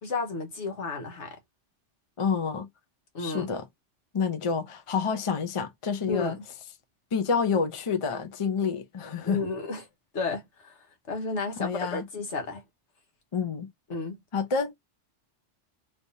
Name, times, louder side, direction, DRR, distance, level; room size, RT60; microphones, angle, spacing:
voice 1, 0.0-1.4 3.1-3.5 6.1-6.4 9.2-9.8 10.1-10.8 11.1-12.6 13.9-14.2, left 3 dB, 70° left, 1.4 m, -32 dB
voice 2, 2.2-2.7 3.2-3.6 4.1-6.4 7.1-9.4 11.6-12.0 13.3-13.7 14.3-14.7, left 5 dB, 35° left, 0.6 m, -28 dB
3.4 x 3.0 x 2.7 m
omnidirectional pair, 1.2 m